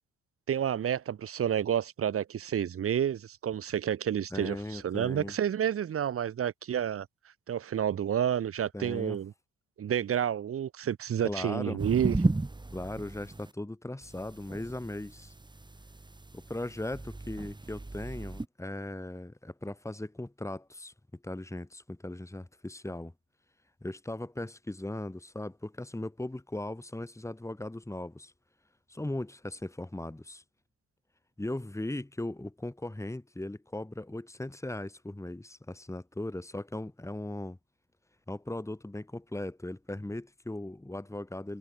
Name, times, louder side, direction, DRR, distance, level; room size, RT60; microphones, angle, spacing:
voice 1, 0.5-7.1 7.5-9.3 9.8-12.1, right 9 dB, 50° right, 1.1 m, -30 dB
voice 2, 4.3-5.3 8.7-9.2 11.2-11.8 12.7-15.3 16.3-20.9 21.2-23.1 23.8-28.3 28.9-30.4 31.4-37.6 38.3-41.6, left 1 dB, 10° left, 5.4 m, -38 dB
sound 1, 11.8-13.5 14.0-18.5, right 2 dB, 15° right, 3.5 m, -35 dB
cardioid pair, 90°, 30 cm